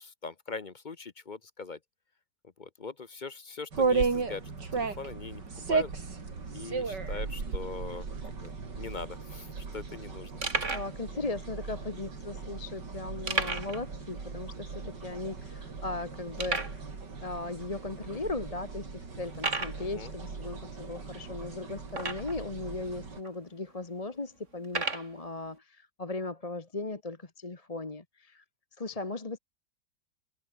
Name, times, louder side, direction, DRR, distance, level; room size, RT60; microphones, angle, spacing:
voice 1, 0.0-1.8 2.6-5.4 5.7-5.9 6.5-9.5 9.7-10.3 19.9-20.1, left 4 dB, 40° left, 0.7 m, -41 dB
sound 1, 3.7-23.2, right 4 dB, 65° right, 3.8 m, -36 dB
sound 2, 5.1-15.6, right 4 dB, 85° right, 4.4 m, -50 dB
sound 3, 9.2-9.4 9.9-10.0 10.4-10.9 11.7-11.8 13.3-13.9 14.1-14.2 14.7-14.8 15.4-15.5 16.4-16.8 17.6-17.7 18.3-18.4 19.3-19.8 21.9-22.5 23.2-23.3 24.6-25.1, right 3 dB, 40° right, 3.3 m, -32 dB
voice 2, 10.7-16.8 17.2-28.4 28.8-29.4, left 3 dB, 20° left, 1.3 m, -37 dB
omnidirectional pair, 2.0 m